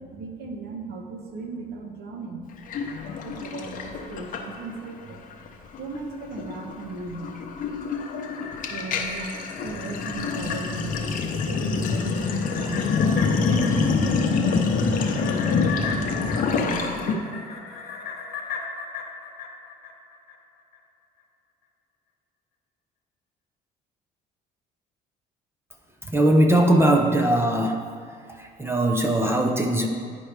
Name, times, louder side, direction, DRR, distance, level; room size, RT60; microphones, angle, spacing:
voice 1, 0.0-2.4 3.2-5.2 5.8-7.5 8.6-11.2 11.5-13.0 13.5-17.2, right 3 dB, 70° right, 2 dB, 1.0 m, -36 dB
Sink (filling or washing), 2.7-4.9 5.2-5.5 5.7-17.2, left 5 dB, 55° left, 0.7 m, -26 dB
sound 1, 7.8-20.4 20.7-20.8, left 5 dB, 85° left, 0.9 m, -37 dB
voice 2, 26.1-27.8 28.4-29.9, right 1 dB, 15° right, 3 dB, 0.5 m, -20 dB
10.0 x 4.3 x 3.3 m, 2.1 s
cardioid pair, 110°, 17 cm